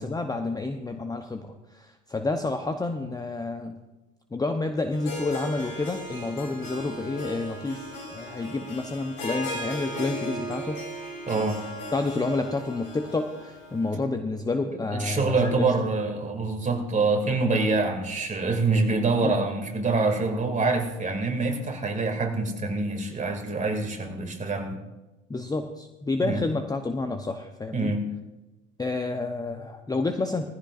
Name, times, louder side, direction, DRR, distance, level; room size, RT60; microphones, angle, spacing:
voice 1, 0.0-3.8 4.3-10.8 11.9-15.7 19.2-19.3 25.3-27.9 28.8-30.5, left 3 dB, 10° left, 6 dB, 0.8 m, -29 dB
Harp, 4.9-13.9, left 1 dB, 60° left, 4.8 m, -37 dB
voice 2, 11.3-11.6 14.9-24.8 26.2-26.4 27.7-28.0, right 3 dB, 20° right, 3 dB, 2.5 m, -25 dB
19.5 x 15.0 x 2.5 m, 1.1 s
hypercardioid pair, 75°, 37 cm